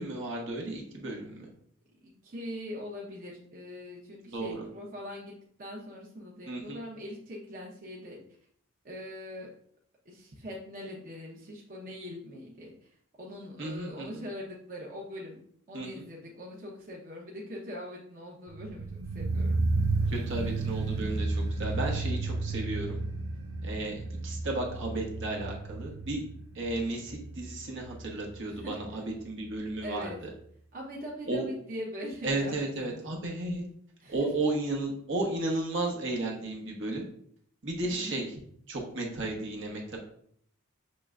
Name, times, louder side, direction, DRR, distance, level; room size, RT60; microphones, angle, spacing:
voice 1, 0.0-1.5 4.3-4.6 6.5-6.8 13.6-14.2 15.7-16.0 20.1-23.0 23.6-26.2 26.5-30.3 31.3-31.4 32.2-33.6 34.1-37.0 37.6-38.4 38.7-40.0, right 2 dB, 60° right, 0 dB, 1.1 m, -33 dB
voice 2, 2.0-5.3 5.6-8.2 8.8-9.5 10.0-12.9 13.2-15.4 15.7-19.6 28.5-28.8 29.8-30.2 30.7-33.0 34.0-34.1 37.9-38.2, equal, 40° right, -4 dB, 0.9 m, -42 dB
sound 1, 18.5-29.5 29.7-29.8, right 3 dB, 75° right, 0.7 m, -32 dB
6.5 x 3.2 x 2.5 m, 0.63 s
head